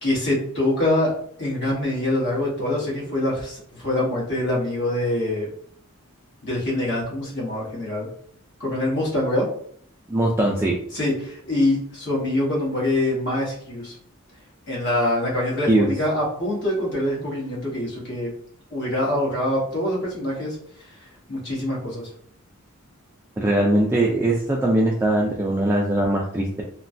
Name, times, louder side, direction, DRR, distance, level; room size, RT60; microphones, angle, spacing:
voice 1, 0.0-5.5 6.4-8.1 8.6-9.5 10.9-13.9 14.7-18.3 18.7-20.6 21.0-22.1, left 1 dB, 55° left, -4 dB, 1.2 m, -24 dB
voice 2, 10.1-10.8 15.7-15.9 23.4-26.6, right 1 dB, 10° right, -3 dB, 0.3 m, -21 dB
3.1 x 2.2 x 2.5 m, 0.62 s
head